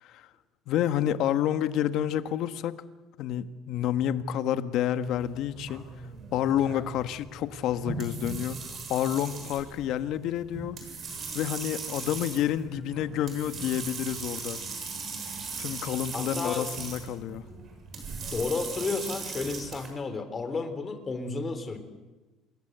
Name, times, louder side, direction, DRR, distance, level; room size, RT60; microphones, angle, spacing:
voice 1, 0.7-2.8 3.2-5.8 6.3-8.6 8.9-10.8 11.3-14.6 15.6-17.4, left 11 dB, 65° left, 11 dB, 1.4 m, -29 dB
sound 1, 5.0-19.9, right 4 dB, 40° right, 7.6 m, -39 dB
voice 2, 16.1-16.7 18.2-21.8, left 4 dB, 25° left, 9 dB, 3.7 m, -32 dB
28.0 x 21.5 x 8.1 m, 1.2 s
cardioid pair, 125°, 0 cm